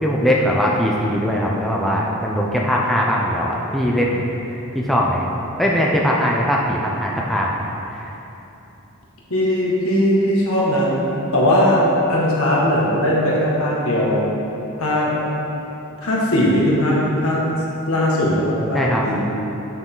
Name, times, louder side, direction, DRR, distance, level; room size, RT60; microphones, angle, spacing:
voice 1, 0.0-4.2 4.7-5.2 5.6-7.6 18.7-19.2, equal, ahead, -3 dB, 0.6 m, -20 dB
voice 2, 9.3-10.9 11.3-14.2 14.8-15.2 16.0-17.4 17.9-19.2, left 1 dB, 70° left, -5 dB, 1.9 m, -19 dB
9.2 x 6.7 x 3.9 m, 3.0 s
head